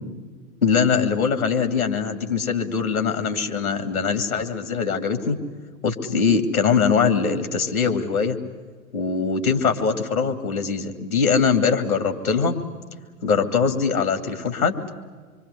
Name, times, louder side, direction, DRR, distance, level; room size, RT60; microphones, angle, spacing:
voice 1, 0.6-5.4 5.8-8.4 8.9-12.5 13.2-14.7, left 5 dB, 75° left, 6 dB, 2.7 m, -22 dB
26.0 x 24.5 x 8.2 m, 1.5 s
figure-of-eight pair, 95°, 43 cm